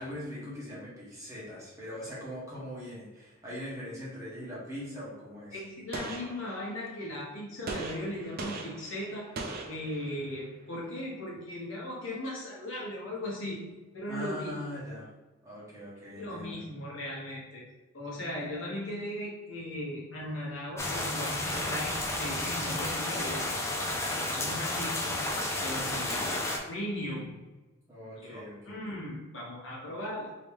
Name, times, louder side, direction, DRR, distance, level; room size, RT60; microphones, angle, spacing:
voice 1, 0.0-5.6 14.1-15.1 15.4-16.6 25.7-26.3 27.9-28.8, left 1 dB, 15° right, -8 dB, 1.3 m, -41 dB
voice 2, 5.5-9.3 9.7-13.6 13.9-14.5 16.2-17.6 17.9-23.6 24.2-25.1 25.6-27.4 28.2-30.4, left 1 dB, 70° left, -4 dB, 1.2 m, -38 dB
Gunshot gunfire, 5.9-7.0 7.7-10.4, right 3 dB, 50° right, 0.5 m, -40 dB
sound 1, 20.8-26.6, left 1 dB, 15° left, 0.4 m, -32 dB
3.1 x 3.0 x 3.5 m, 1.2 s
head